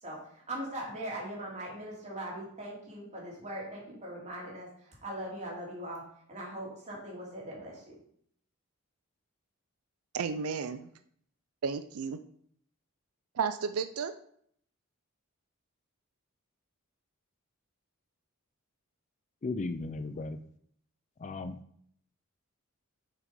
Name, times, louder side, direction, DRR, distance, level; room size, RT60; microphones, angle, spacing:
voice 1, 0.0-6.0 6.3-7.9, right 1 dB, 35° right, 3.0 m, -40 dB
voice 2, 10.1-10.9 11.6-12.2 13.3-14.1, right 5 dB, 85° right, 0.5 m, -32 dB
voice 3, 19.4-20.4 21.2-21.5, left 3 dB, 35° left, 0.4 m, -35 dB
6.7 x 6.1 x 5.3 m
head